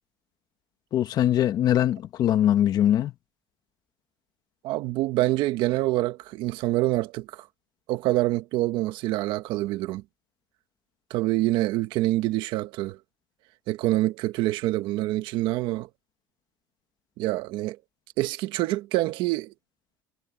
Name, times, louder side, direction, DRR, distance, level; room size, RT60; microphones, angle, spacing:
voice 1, 0.9-3.1, left 11 dB, 50° left, 1.8 m, -22 dB
voice 2, 4.6-7.5 7.9-10.0 11.1-13.0 13.7-15.9 17.2-17.8 18.2-19.5, right 17 dB, 70° right, 1.6 m, -26 dB
cardioid pair, 110°, 9 cm